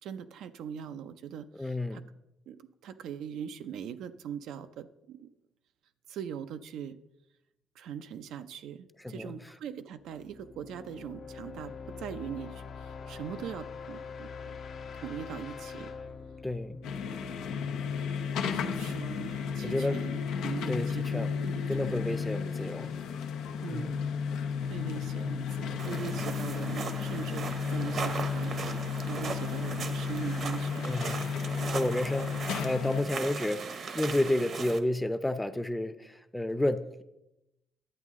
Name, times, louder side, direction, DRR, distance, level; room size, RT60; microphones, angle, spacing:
voice 1, 0.0-2.0 2.5-5.3 6.1-7.0 7.7-14.3 14.9-15.9 18.5-22.0 23.6-24.1 24.6-28.5 29.1-31.0, right 8 dB, 80° right, 10 dB, 0.5 m, -41 dB
voice 2, 1.6-2.0 9.0-9.3 16.4-16.8 19.6-20.0 20.7-21.3 21.7-22.9 23.7-23.9 30.8-31.3 31.7-37.0, left 1 dB, 10° left, 11 dB, 0.6 m, -31 dB
sound 1, 10.0-17.9, left 5 dB, 70° left, 1.0 m, -44 dB
sound 2, 16.8-33.0, left 6 dB, 90° left, 0.7 m, -33 dB
sound 3, 25.8-34.8, right 5 dB, 55° right, 0.9 m, -38 dB
10.5 x 8.2 x 3.6 m, 0.91 s
cardioid pair, 90°, 0 cm